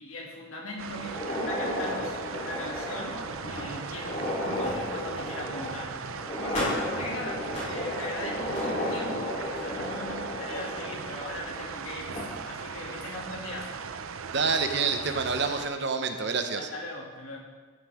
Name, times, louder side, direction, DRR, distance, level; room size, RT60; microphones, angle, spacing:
voice 1, 0.0-13.8 16.6-17.4, left 1 dB, 80° left, -2 dB, 2.4 m, -39 dB
sound 1, 0.8-15.7, right 6 dB, 80° right, 0.6 m, -38 dB
sound 2, 1.0-11.8 12.1-12.2 13.0-13.1 13.6-13.7 15.0-15.3, left 1 dB, 35° left, 3.6 m, -33 dB
voice 2, 14.3-16.7, right 4 dB, 55° right, 6 dB, 0.9 m, -27 dB
13.5 x 9.9 x 3.6 m, 1.4 s
head